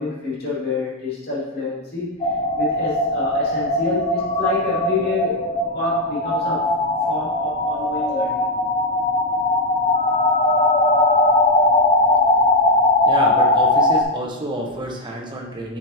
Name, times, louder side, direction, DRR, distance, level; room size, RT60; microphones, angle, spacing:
voice 1, 0.0-6.7 7.1-8.5, left 3 dB, 50° left, -8 dB, 2.5 m, -28 dB
sound 1, 2.2-14.0, left 2 dB, 30° left, 0.6 m, -19 dB
voice 2, 13.1-15.8, right 1 dB, 25° right, 0 dB, 1.1 m, -28 dB
9.1 x 5.3 x 2.8 m, 1.0 s
head